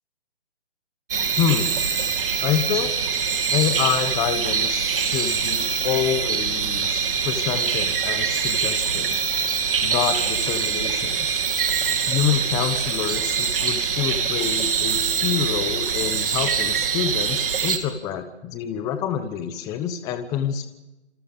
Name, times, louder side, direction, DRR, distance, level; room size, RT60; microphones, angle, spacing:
sound 1, 1.1-17.8, right 6 dB, 50° right, 3.2 m, -24 dB
voice 1, 1.4-1.8 2.4-2.9 3.5-9.3 9.8-11.4 12.1-20.7, left 9 dB, 10° left, 9 dB, 1.0 m, -27 dB
27.5 x 27.0 x 5.5 m, 1.0 s
hypercardioid pair, 155°, 34 cm